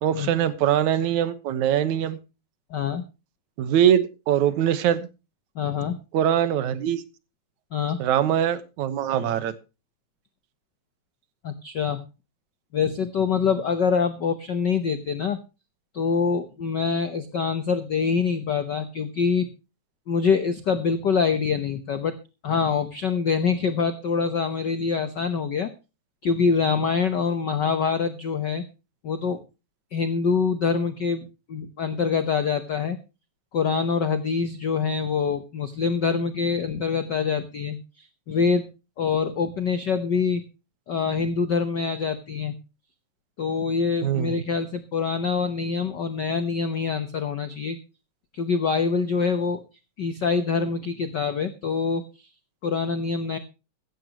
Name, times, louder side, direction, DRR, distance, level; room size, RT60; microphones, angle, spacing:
voice 1, 0.0-2.2 3.6-5.1 6.1-7.0 8.0-9.5 44.0-44.4, right 10 dB, 75° right, 2.5 m, -22 dB
voice 2, 2.7-3.0 5.6-6.0 7.7-8.0 11.4-12.0 12.7-15.4 15.9-19.5 20.1-22.2 22.4-25.7 26.2-28.6 29.0-29.4 29.9-33.0 33.5-38.7 39.0-40.4 40.9-42.5 43.4-47.8 48.3-49.6 50.0-52.0 52.6-53.4, left 5 dB, 70° left, 1.0 m, -25 dB
15.5 x 14.5 x 2.9 m
omnidirectional pair, 3.4 m